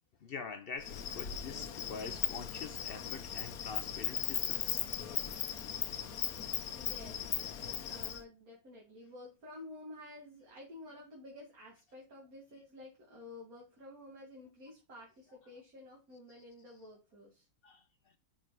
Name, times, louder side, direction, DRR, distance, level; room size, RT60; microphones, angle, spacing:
voice 1, 0.2-4.9 5.5-5.6 6.3-6.8 16.3-16.4 17.6-17.8, left 5 dB, 60° left, 0.6 m, -46 dB
Insect, 0.8-8.2, left 9 dB, 85° left, 1.3 m, -38 dB
voice 2, 6.7-7.3 7.9-17.5, left 2 dB, 75° right, 2.5 m, -51 dB
5.9 x 4.5 x 4.7 m
omnidirectional pair, 1.5 m